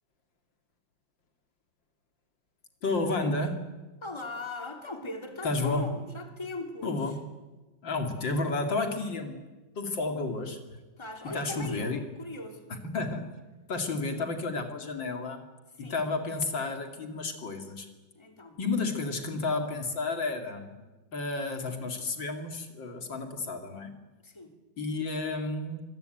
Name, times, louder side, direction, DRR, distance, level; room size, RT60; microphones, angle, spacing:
voice 1, 2.8-3.6 5.4-5.9 6.8-7.2 7.8-9.4 9.8-10.8 11.3-12.0 12.7-13.3 13.7-15.4 15.8-17.9 18.6-20.7 21.1-23.9 24.8-25.8, left 3 dB, 70° left, 5 dB, 3.2 m, -31 dB
voice 2, 4.0-7.2 11.0-12.7 15.7-16.0 18.1-18.6 24.2-24.5, left 2 dB, 15° left, 4 dB, 2.8 m, -39 dB
25.5 x 22.5 x 9.2 m, 1.2 s
omnidirectional pair, 2.1 m